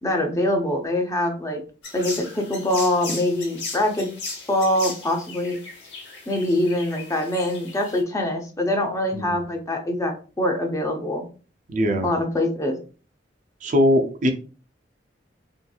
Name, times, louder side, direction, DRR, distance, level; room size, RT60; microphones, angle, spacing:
voice 1, 0.0-1.6 1.9-4.1 4.5-5.6 6.3-11.3 12.0-12.8, left 1 dB, 20° left, 2 dB, 0.5 m, -24 dB
sound 1, 1.8-8.0, left 3 dB, 90° left, 0.9 m, -37 dB
voice 2, 11.7-12.1 13.6-14.3, left 1 dB, 45° right, 5 dB, 0.4 m, -21 dB
2.8 x 2.6 x 2.3 m, 0.37 s
head